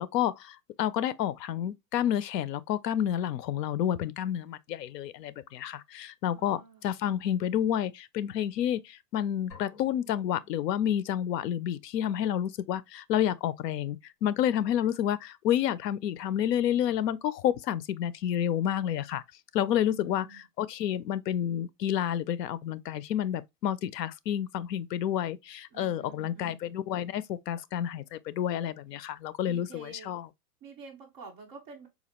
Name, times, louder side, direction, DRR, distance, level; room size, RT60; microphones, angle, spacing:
voice 1, 0.0-19.2 19.5-30.2, left 10 dB, 85° left, 0.6 m, -30 dB
voice 2, 6.3-7.0 19.9-20.4 25.7-26.6 29.5-30.2 30.6-31.9, right 5 dB, 15° right, 0.5 m, -49 dB
sound 1, 9.5-11.3, left 4 dB, 50° left, 1.8 m, -54 dB
4.1 x 2.4 x 2.8 m
supercardioid pair, 160°, 48 cm